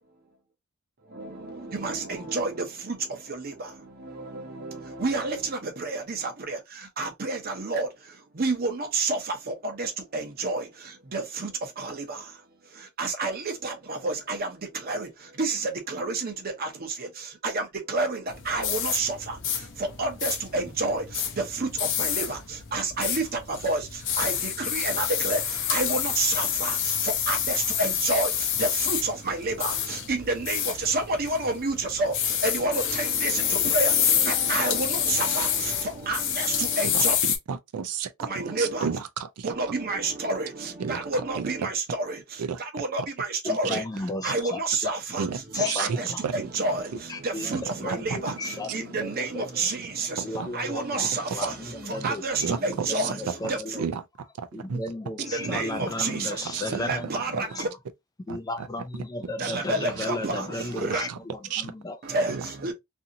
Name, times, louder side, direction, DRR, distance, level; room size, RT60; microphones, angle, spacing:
voice 1, 1.0-37.2 38.2-39.0 39.4-53.9 55.2-57.7 59.4-61.1 62.0-62.7, right 3 dB, 40° right, 0.7 m, -30 dB
sound 1, 18.3-37.4, left 9 dB, 55° left, 0.6 m, -28 dB
voice 2, 36.9-38.3 38.6-39.5 40.8-41.0 41.3-41.7 42.4-42.6 43.6-43.8 45.2-46.0 46.2-46.4 47.5-47.6 47.9-48.3 50.4-50.5 52.4-52.6 52.9-53.1 53.8-54.0 54.4-54.8 55.4-57.0 58.3-58.7 58.9-59.1 59.4-59.6 60.8-61.2 61.5-61.7 62.3-62.4, right 6 dB, 80° right, 0.4 m, -32 dB
voice 3, 43.4-44.6 45.5-45.9 47.1-49.4 50.2-51.1 51.3-51.5 51.8-52.2 52.9-53.8 54.5-57.6 58.3-62.0, left 2 dB, 15° left, 0.3 m, -34 dB
2.7 x 2.6 x 2.5 m
head